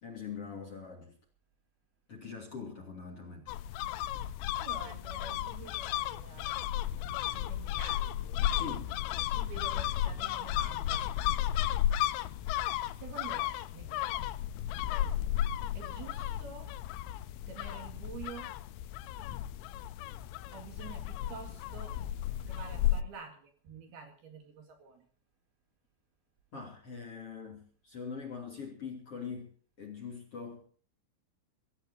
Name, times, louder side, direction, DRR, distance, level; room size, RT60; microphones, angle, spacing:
voice 1, 0.0-1.1 2.1-3.5 8.5-8.9 26.5-30.6, left 6 dB, 35° left, 3.0 m, -43 dB
sound 1, 3.5-23.0, left 12 dB, 85° left, 3.4 m, -34 dB
voice 2, 4.6-8.4 8.9-11.1 13.0-14.3 15.8-16.7 17.5-18.6 20.5-22.0 22.4-25.1, right 5 dB, 55° right, 3.8 m, -49 dB
25.5 x 15.5 x 2.8 m
omnidirectional pair, 5.7 m